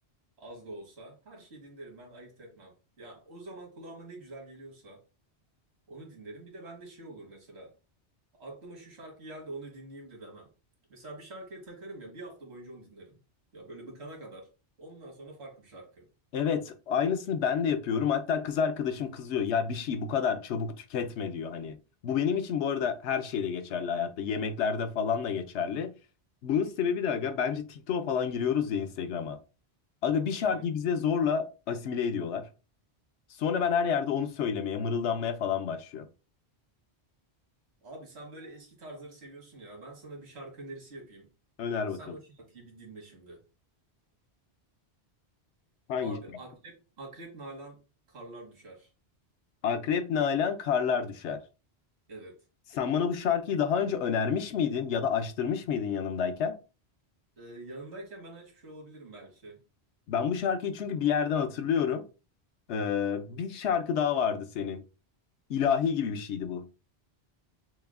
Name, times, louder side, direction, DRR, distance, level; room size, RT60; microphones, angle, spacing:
voice 1, 0.4-5.0 5.9-7.7 8.3-10.5 10.9-13.2 13.5-14.5 14.8-16.0 30.4-30.6 37.8-41.3 41.9-43.4 46.0-47.8 48.1-48.9 52.1-52.4 57.4-59.6, right 2 dB, 75° right, 1.7 m, -46 dB
voice 2, 16.3-21.8 22.0-25.9 26.4-29.4 30.0-32.4 33.4-36.1 41.6-42.2 45.9-46.2 49.6-51.4 52.7-56.6 60.1-62.0 62.7-64.8 65.5-66.6, left 7 dB, 85° left, 0.9 m, -29 dB
6.1 x 2.4 x 2.2 m
omnidirectional pair, 1.1 m